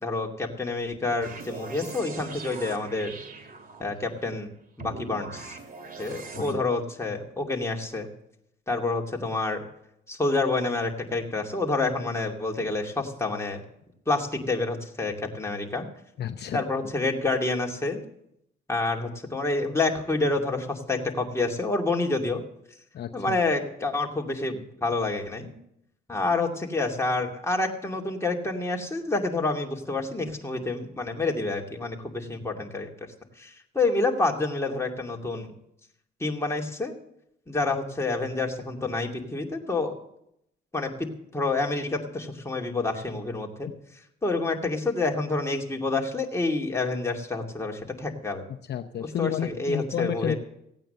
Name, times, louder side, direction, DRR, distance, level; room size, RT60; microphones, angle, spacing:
voice 1, 0.0-3.1 3.8-4.5 4.8-5.6 6.0-8.1 8.7-9.6 10.1-13.6 14.1-15.9 16.5-18.0 18.7-22.4 23.1-25.6 26.1-32.9 33.4-35.5 36.2-36.9 37.5-40.0 40.7-43.7 44.2-48.4 49.0-50.4, left 3 dB, 15° left, 0 dB, 2.5 m, -28 dB
sound 1, 1.2-4.1 4.8-6.5, right 3 dB, 45° right, 2.3 m, -41 dB
voice 2, 16.2-16.6 22.9-23.4 48.7-50.3, left 9 dB, 60° left, 6 dB, 0.8 m, -31 dB
16.5 x 9.0 x 6.8 m, 0.76 s
cardioid pair, 90°, 20 cm